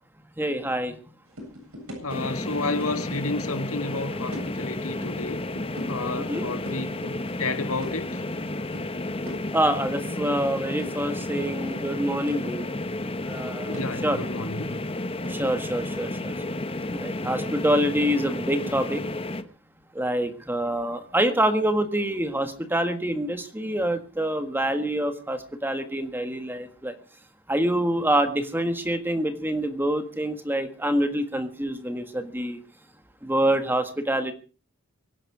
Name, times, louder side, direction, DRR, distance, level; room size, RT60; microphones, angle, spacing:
voice 1, 0.4-0.9 6.3-6.5 9.5-12.7 13.2-14.2 15.3-16.3 16.9-19.0 19.9-26.9 27.5-32.6 33.2-34.3, right 1 dB, 10° right, 1.6 m, -26 dB
sound 1, 1.2-15.5, equal, 85° right, 7.8 m, -45 dB
voice 2, 2.0-5.4 5.9-8.2 13.7-14.8, left 2 dB, 80° left, 1.9 m, -31 dB
sound 2, 2.1-19.4, left 2 dB, 25° left, 1.0 m, -32 dB
24.0 x 10.5 x 4.9 m
head